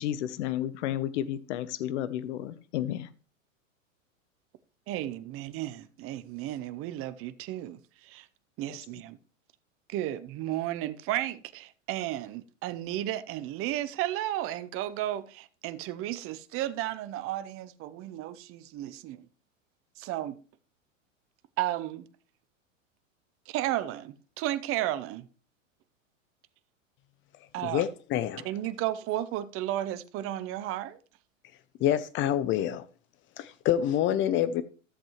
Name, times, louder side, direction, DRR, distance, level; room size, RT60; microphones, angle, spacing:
voice 1, 0.0-3.1 8.7-8.8, left 12 dB, 60° left, 0.8 m, -32 dB
voice 2, 4.9-8.3 8.6-9.2 9.9-19.3 20.0-20.4 21.6-22.1 23.5-25.3 27.5-27.8 28.4-31.0, right 13 dB, 35° right, 0.7 m, -33 dB
voice 3, 27.6-28.4 31.8-32.9 33.4-34.6, left 11 dB, 30° left, 0.5 m, -27 dB
13.5 x 7.5 x 3.1 m
hypercardioid pair, 95°, 39 cm